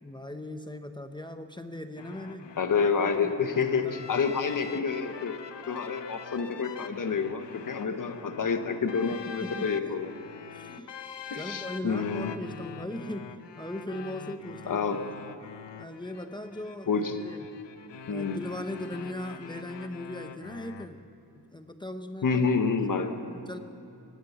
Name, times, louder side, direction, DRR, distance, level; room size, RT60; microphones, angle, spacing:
voice 1, 0.0-2.5 3.2-3.3 3.7-3.8 9.4-10.0 10.5-11.0 11.3-14.8 15.8-16.9 17.2-17.5 18.1-21.0 21.3-22.5 23.3-23.6, left 1 dB, 10° left, 7 dB, 0.7 m, -39 dB
sound 1, 2.0-20.9, left 7 dB, 90° left, 0.9 m, -45 dB
voice 2, 2.6-5.4 5.7-10.2 11.3-12.3 14.7-15.0 16.9-17.2 18.1-18.4 22.2-23.1, left 5 dB, 50° left, 7 dB, 1.3 m, -28 dB
24.0 x 19.0 x 5.9 m, 2.7 s
wide cardioid pair, 175°, 41 cm